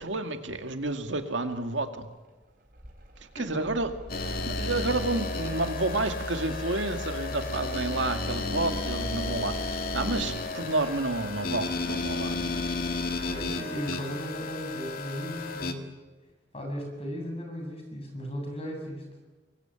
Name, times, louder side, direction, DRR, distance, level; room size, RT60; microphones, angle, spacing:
voice 1, 0.0-2.1 3.4-3.9 4.3-12.8 14.0-14.1, right 2 dB, 90° right, 6 dB, 2.2 m, -30 dB
Mechanical fan, 2.2-13.5, equal, 50° right, 5.0 m, -39 dB
voice 2, 3.4-3.7 13.3-15.9 16.5-19.0, equal, 35° left, 2 dB, 7.8 m, -36 dB
sound 1, 4.1-15.7, left 3 dB, 50° left, 2.2 m, -33 dB
25.0 x 22.5 x 9.0 m, 1.3 s
head